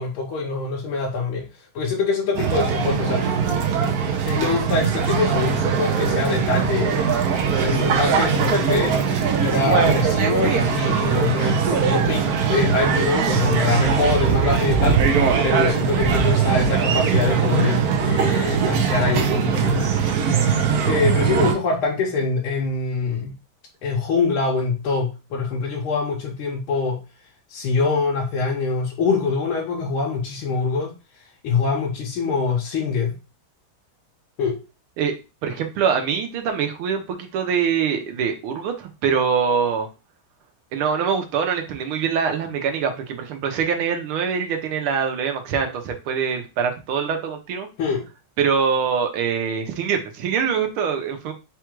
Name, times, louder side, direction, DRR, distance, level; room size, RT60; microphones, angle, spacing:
voice 1, 0.0-1.5 1.8-3.2 4.3-7.1 7.6-9.0 9.4-20.0 20.9-23.3 23.8-27.0 27.5-30.9 31.4-33.1 34.4-34.6 47.8-48.1, left 4 dB, 85° left, -2 dB, 1.7 m, -24 dB
sound 1, 2.3-21.5, right 7 dB, 65° right, 1.0 m, -21 dB
voice 2, 35.4-39.9 40.7-47.7 48.4-51.3, right 6 dB, 90° right, 5 dB, 1.7 m, -24 dB
4.6 x 2.4 x 4.5 m, 0.29 s
omnidirectional pair, 2.2 m